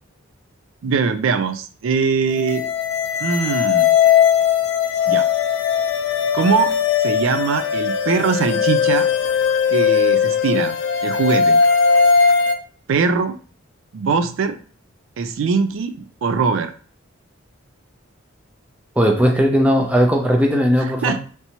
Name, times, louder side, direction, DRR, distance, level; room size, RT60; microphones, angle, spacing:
voice 1, 0.8-2.6 3.2-3.9 5.1-5.3 6.3-6.7 7.0-9.1 9.7-10.8 11.0-11.6 12.9-13.3 13.9-14.6 15.2-15.9 16.2-16.7 20.8-21.2, right 5 dB, 75° right, 9 dB, 0.4 m, -21 dB
sound 1, 2.3-12.5, left 6 dB, 65° left, 0.5 m, -18 dB
voice 2, 19.0-21.2, equal, 5° right, 1 dB, 0.5 m, -17 dB
3.3 x 2.8 x 2.8 m, 0.40 s
head